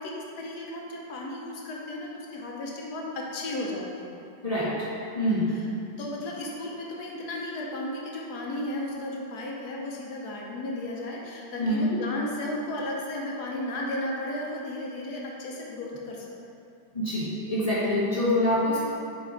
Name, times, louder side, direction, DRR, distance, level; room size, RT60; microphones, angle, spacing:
voice 1, 0.0-4.1 5.3-5.7 6.0-16.3, left 1 dB, 65° left, -2 dB, 1.3 m, -34 dB
voice 2, 4.4-4.9 5.1-5.5 11.6-12.0 16.9-18.8, left 1 dB, 30° left, -9 dB, 0.7 m, -25 dB
6.5 x 4.4 x 3.8 m, 2.7 s
omnidirectional pair, 2.1 m